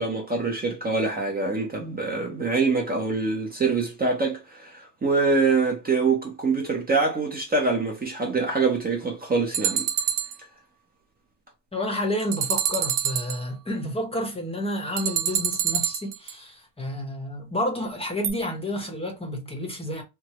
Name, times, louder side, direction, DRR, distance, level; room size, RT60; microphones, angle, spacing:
voice 1, 0.0-9.9, right 4 dB, 20° right, 0.7 m, -25 dB
sound 1, 9.5-10.4 12.2-13.4 15.0-16.3 18.2-18.3, right 9 dB, 65° right, 0.7 m, -26 dB
voice 2, 11.7-20.0, left 1 dB, 15° left, 0.9 m, -30 dB
3.4 x 2.0 x 2.9 m
cardioid pair, 125°, 43 cm